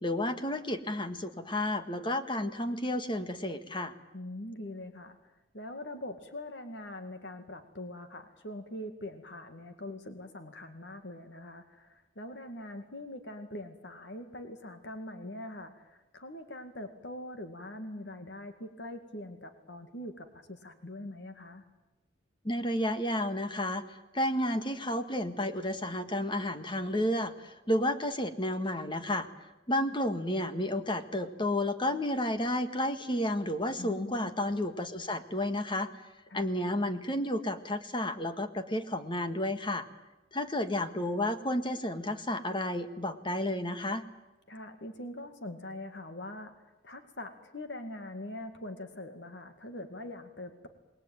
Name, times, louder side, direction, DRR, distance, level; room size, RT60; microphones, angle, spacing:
voice 1, 0.0-3.9 22.4-29.3 29.7-35.9 36.3-39.9 40.3-44.0, left 1 dB, 25° left, 9 dB, 1.7 m, -31 dB
voice 2, 4.1-21.6 33.8-34.3 36.3-36.5 44.5-46.5 46.8-50.7, left 1 dB, 65° left, 8 dB, 2.1 m, -43 dB
28.0 x 20.5 x 9.1 m, 1.1 s
head